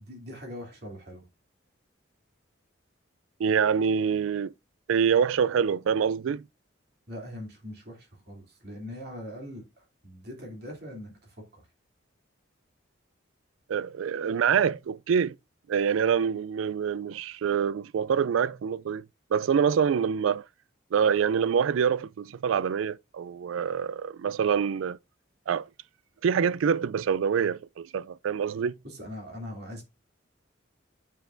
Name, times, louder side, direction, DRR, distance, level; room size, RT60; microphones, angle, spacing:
voice 1, 0.1-1.3 7.1-11.6 28.8-29.8, left 1 dB, 55° right, 2.7 m, -41 dB
voice 2, 3.4-4.5 4.9-6.4 13.7-15.3 15.7-19.0 19.3-20.4 20.9-25.0 25.5-25.7 26.2-28.7, right 7 dB, 85° right, 0.3 m, -25 dB
9.1 x 5.6 x 2.5 m
head